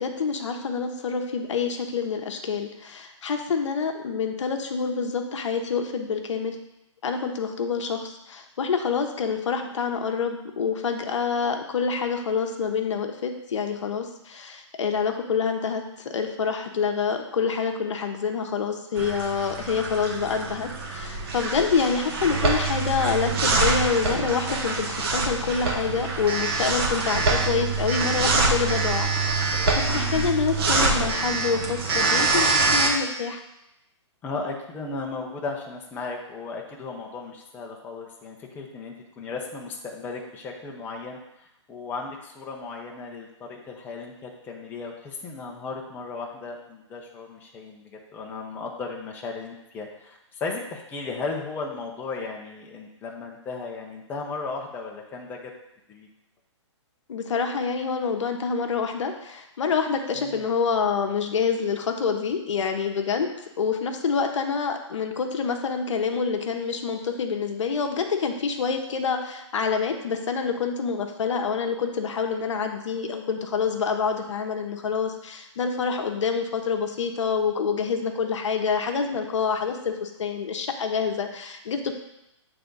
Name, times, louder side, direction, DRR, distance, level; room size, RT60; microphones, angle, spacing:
voice 1, 0.0-6.6 7.0-33.4 57.1-63.3 63.6-81.9, left 5 dB, 70° left, 4 dB, 0.8 m, -27 dB
sound 1, 19.0-32.9, right 3 dB, 50° right, 1.3 m, -25 dB
voice 2, 29.9-30.3 34.2-55.5 55.9-56.1 60.2-60.5, left 4 dB, 10° left, 0 dB, 0.6 m, -36 dB
7.8 x 3.5 x 3.9 m, 0.87 s
hypercardioid pair, 145°, 16 cm